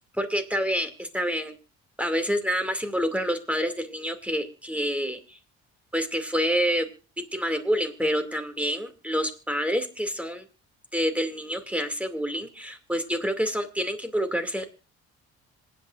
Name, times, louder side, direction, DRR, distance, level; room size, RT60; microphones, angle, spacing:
voice 1, 0.1-1.5 2.0-5.4 5.9-6.9 7.3-10.4 10.9-14.7, equal, 5° right, 7 dB, 2.4 m, -27 dB
26.5 x 8.9 x 2.5 m, 0.34 s
supercardioid pair, 75°, 31 cm